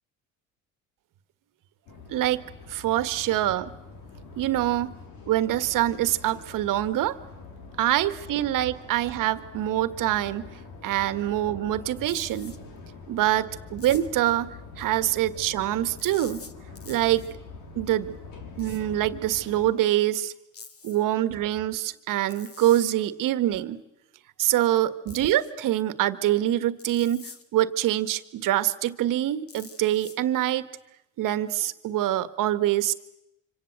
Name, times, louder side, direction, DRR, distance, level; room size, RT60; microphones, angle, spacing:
sound 1, 1.9-19.7, left 4 dB, 70° left, 4.5 m, -44 dB
voice 1, 2.1-3.7 4.3-4.9 5.3-7.2 7.8-10.5 10.8-12.6 13.1-16.4 16.9-17.4 17.8-18.2 18.6-20.3 20.8-23.8 24.4-30.7 31.2-32.9, right 13 dB, 60° right, 12 dB, 1.6 m, -25 dB
sound 2, 12.0-12.6 13.8-14.3 16.0-17.3 18.6-18.8 20.5-21.0 22.3-22.9 25.1-25.5 26.8-27.4 29.5-30.2, left 4 dB, 40° left, 2.5 m, -46 dB
26.0 x 26.0 x 7.9 m, 0.87 s
hypercardioid pair, 65°, 36 cm